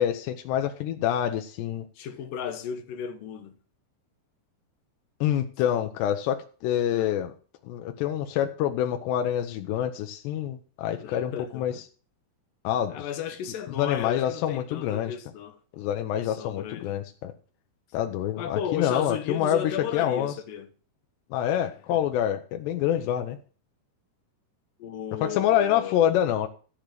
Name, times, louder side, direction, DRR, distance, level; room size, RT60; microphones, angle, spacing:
voice 1, 0.0-1.9 5.2-7.3 7.6-11.7 12.6-13.0 13.8-15.1 15.7-17.3 17.9-20.3 21.3-23.4 25.2-26.5, left 10 dB, 85° left, 3.1 m, -26 dB
voice 2, 2.0-3.6 6.9-7.2 11.0-11.8 12.9-15.6 16.2-16.9 18.4-20.7 21.6-22.0 24.8-26.1, left 8 dB, 70° left, 2.3 m, -35 dB
13.5 x 5.1 x 7.6 m
omnidirectional pair, 4.8 m